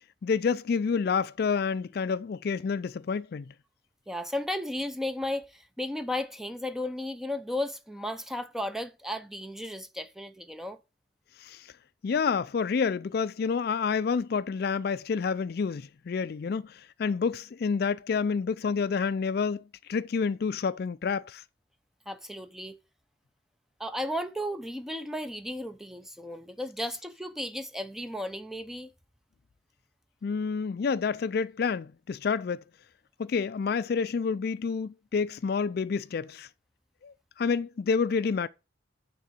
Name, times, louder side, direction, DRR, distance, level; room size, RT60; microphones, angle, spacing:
voice 1, 0.2-3.5 11.4-11.7 12.0-19.6 19.9-21.4 30.2-32.6 33.2-36.5 37.0-38.5, left 5 dB, 55° left, 0.3 m, -29 dB
voice 2, 4.1-10.8 22.1-22.8 23.8-28.9, left 1 dB, ahead, 0.6 m, -34 dB
9.3 x 3.8 x 6.7 m
head